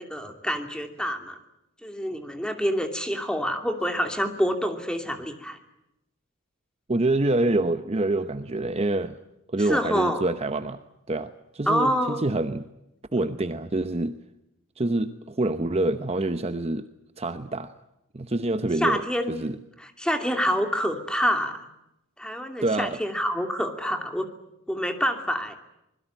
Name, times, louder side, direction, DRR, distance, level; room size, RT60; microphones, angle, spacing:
voice 1, 0.0-1.4 1.8-5.6 9.7-10.2 11.7-12.2 18.8-19.4 19.8-21.7 22.2-24.3 24.7-25.5, equal, 5° left, 6 dB, 2.7 m, -27 dB
voice 2, 6.9-9.2 9.5-10.8 11.1-12.7 13.1-14.2 14.8-16.9 17.2-17.7 18.1-19.0 19.3-19.6 22.6-23.0, right 2 dB, 30° right, 10 dB, 0.9 m, -26 dB
25.5 x 21.0 x 9.0 m, 0.86 s
head